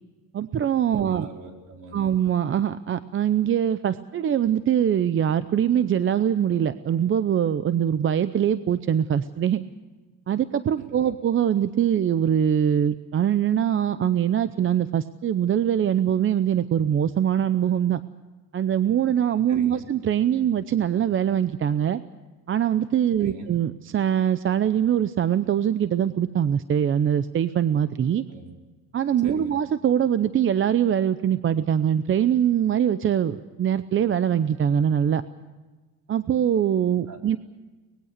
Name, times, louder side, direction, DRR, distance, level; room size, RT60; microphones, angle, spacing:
voice 1, 0.3-1.3 1.9-9.6 10.3-18.0 18.5-22.0 22.5-28.2 28.9-35.2 36.1-37.4, right 9 dB, 35° right, 13 dB, 0.7 m, -23 dB
voice 2, 0.9-2.1 10.8-11.1 19.5-19.9 23.2-23.5 28.3-28.5 29.2-29.6 37.1-37.4, right 3 dB, 55° right, 3 dB, 4.4 m, -42 dB
24.0 x 20.5 x 6.6 m, 1.3 s
cardioid pair, 125°, 36 cm